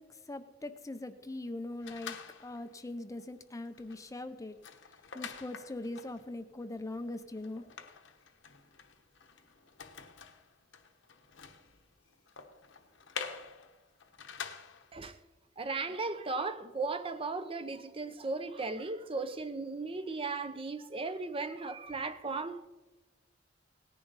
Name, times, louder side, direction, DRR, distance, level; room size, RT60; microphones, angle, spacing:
voice 1, 0.0-4.6 5.1-7.6, left 2 dB, 15° left, 0.5 m, -41 dB
sound 1, 1.8-2.8 3.2-3.4 3.7-15.0, left 6 dB, 70° left, 1.0 m, -47 dB
voice 2, 15.6-22.7, right 3 dB, 30° right, 0.7 m, -36 dB
18.0 x 10.5 x 4.0 m
head